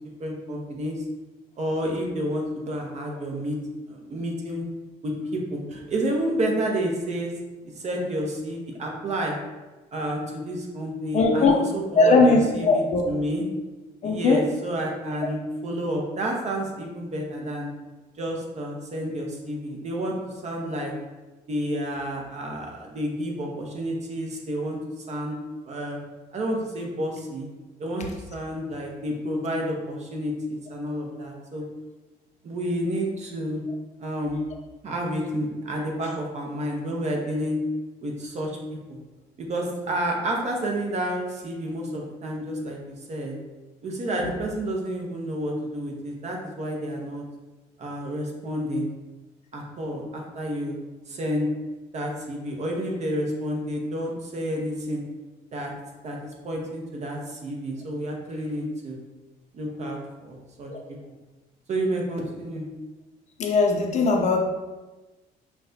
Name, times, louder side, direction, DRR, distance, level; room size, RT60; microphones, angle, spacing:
voice 1, 0.2-1.0 1.6-3.6 3.9-4.7 5.0-7.3 7.8-9.4 9.9-13.4 14.0-17.7 18.2-20.2 20.4-20.9 21.5-25.4 25.7-26.0 26.3-27.5 27.8-31.6 32.4-33.6 34.0-34.4 34.8-37.6 38.0-38.6 39.4-43.3 43.8-47.2 47.8-48.9 49.5-50.8 51.1-51.5 51.9-55.0 55.5-55.7 56.0-59.0 59.5-60.7 61.7-62.7, right 1 dB, 40° right, 0 dB, 0.8 m, -30 dB
voice 2, 11.1-11.6 12.0-13.1 14.0-14.4 60.7-60.8 63.4-64.4, left 3 dB, 45° left, 2 dB, 0.6 m, -19 dB
5.6 x 2.2 x 2.7 m, 1.2 s
cardioid pair, 110°, 17 cm